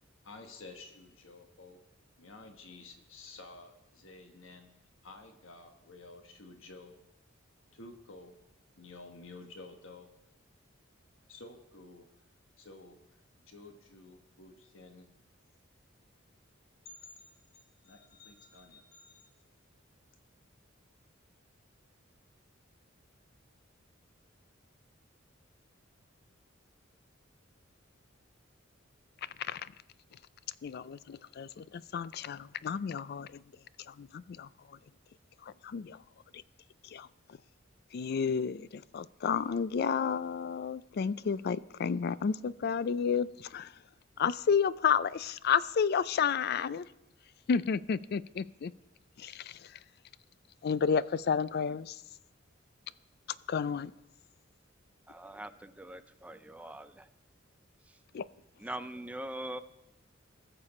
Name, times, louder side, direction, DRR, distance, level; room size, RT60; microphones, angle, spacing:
voice 1, 0.2-1.8 2.2-4.7 5.0-7.0 7.7-8.4 8.8-10.1 11.3-12.1 12.6-13.0 13.3-15.1 16.8-19.3, left 3 dB, 75° left, 5 dB, 1.3 m, -51 dB
voice 2, 29.4-29.7 30.6-33.4 33.9-34.8 35.4-36.0 36.8-37.1 37.9-43.7 44.2-46.8 47.5-48.7 49.2-49.6 50.6-52.0 53.5-53.9 58.1-58.2, left 6 dB, 50° left, 18 dB, 0.3 m, -31 dB
voice 3, 55.1-57.1 58.6-59.6, right 1 dB, 5° right, 9 dB, 0.5 m, -42 dB
20.0 x 6.8 x 4.3 m, 0.88 s
head